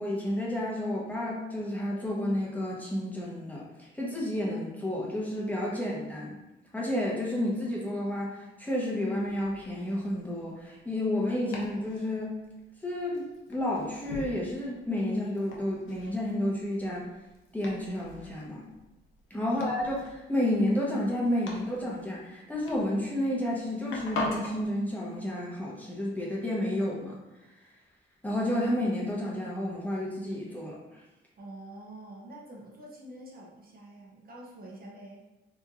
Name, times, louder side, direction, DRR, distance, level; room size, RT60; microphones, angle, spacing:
voice 1, 0.0-6.4 6.7-12.4 12.8-17.1 17.5-18.6 19.3-27.2 28.2-31.0, left 1 dB, 10° left, -5 dB, 0.9 m, -31 dB
Domestic sounds home sounds, 9.1-24.6, left 2 dB, 85° left, 0.7 m, -43 dB
voice 2, 31.4-35.2, right 1 dB, 50° right, -2 dB, 0.7 m, -46 dB
3.0 x 2.5 x 3.6 m, 1.0 s
cardioid pair, 110°, 20 cm